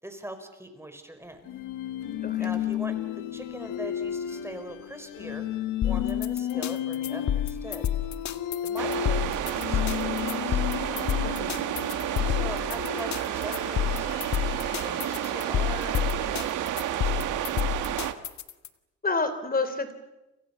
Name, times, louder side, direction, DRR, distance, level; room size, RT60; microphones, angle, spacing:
voice 1, 0.0-1.5 2.4-5.5 5.8-7.9 8.6-10.6 12.2-17.8, right 1 dB, 10° right, 7 dB, 5.1 m, -42 dB
sound 1, 1.4-16.5, left 11 dB, 90° left, 2.1 m, -34 dB
voice 2, 2.2-2.5 11.2-11.6 19.0-19.9, left 3 dB, 30° left, 11 dB, 3.7 m, -29 dB
sound 2, 5.8-18.7, left 10 dB, 65° left, 1.8 m, -29 dB
sound 3, 8.8-18.1, right 11 dB, 85° right, 1.8 m, -31 dB
29.5 x 27.0 x 7.1 m, 1.0 s
cardioid pair, 90°, 30 cm